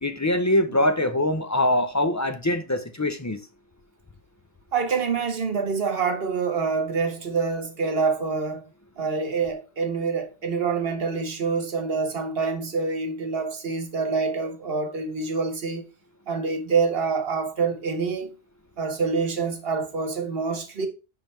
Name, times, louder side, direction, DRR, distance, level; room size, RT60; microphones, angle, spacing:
voice 1, 0.0-3.4, left 1 dB, 25° left, 0.3 m, -23 dB
voice 2, 4.7-8.6 9.0-15.8 16.3-18.3 18.8-20.9, right 4 dB, 60° right, 1.3 m, -26 dB
5.6 x 5.4 x 4.3 m
omnidirectional pair, 1.1 m